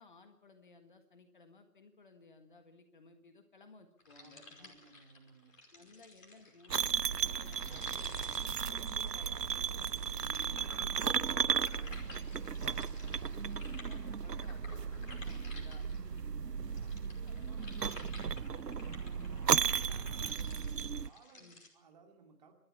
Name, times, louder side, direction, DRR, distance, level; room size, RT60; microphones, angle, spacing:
voice 1, 0.0-4.7 5.7-12.8 13.4-16.2 21.4-21.6, left 3 dB, 30° left, 7 dB, 1.7 m, -59 dB
sound 1, 4.0-16.2 16.6-21.7, left 2 dB, 55° left, 5.4 m, -54 dB
voice 2, 4.2-5.5 16.1-18.7 19.0-21.5 21.7-22.5, right 5 dB, 25° right, 2 dB, 2.7 m, -61 dB
sound 2, 6.7-21.1, right 7 dB, 90° right, 0.7 m, -35 dB
29.0 x 13.0 x 7.2 m, 0.78 s
figure-of-eight pair, 150°, 47 cm